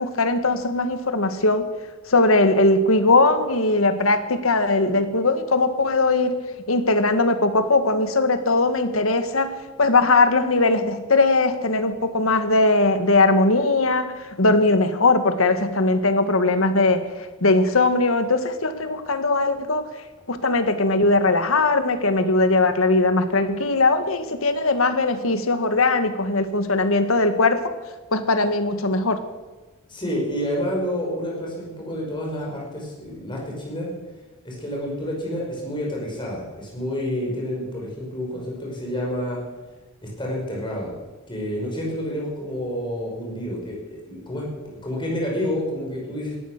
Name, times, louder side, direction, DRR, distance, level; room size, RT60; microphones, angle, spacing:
voice 1, 0.0-1.6 2.1-6.4 6.7-19.9 20.3-27.6 28.1-29.2, left 2 dB, 85° left, 9 dB, 1.6 m, -20 dB
voice 2, 29.9-33.9 34.4-39.4 40.2-40.9 41.3-44.5 44.8-46.4, equal, 25° left, -2 dB, 5.2 m, -29 dB
17.5 x 12.5 x 6.5 m, 1.2 s
head